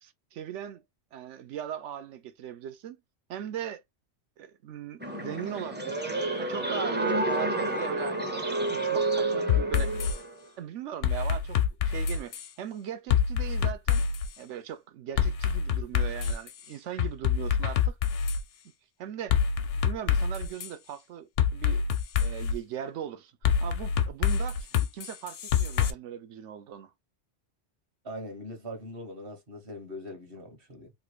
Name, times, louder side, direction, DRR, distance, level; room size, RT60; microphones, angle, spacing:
voice 1, 0.0-0.8 1.1-3.0 3.3-3.8 4.4-8.2 8.6-9.9 10.6-14.1 14.4-18.0 19.0-19.4 19.7-21.8 22.2-24.7 24.9-26.9, right 9 dB, 85° right, 1.0 m, -39 dB
sound 1, 5.0-10.3, right 2 dB, 15° right, 0.4 m, -29 dB
sound 2, 9.5-10.2 11.0-12.5 13.1-14.3 15.2-16.5 17.0-18.4 19.3-20.7 21.4-22.6 23.4-25.9, left 7 dB, 85° left, 0.9 m, -26 dB
voice 2, 28.0-30.9, equal, 55° right, 1.4 m, -41 dB
3.3 x 2.6 x 3.0 m
omnidirectional pair, 1.2 m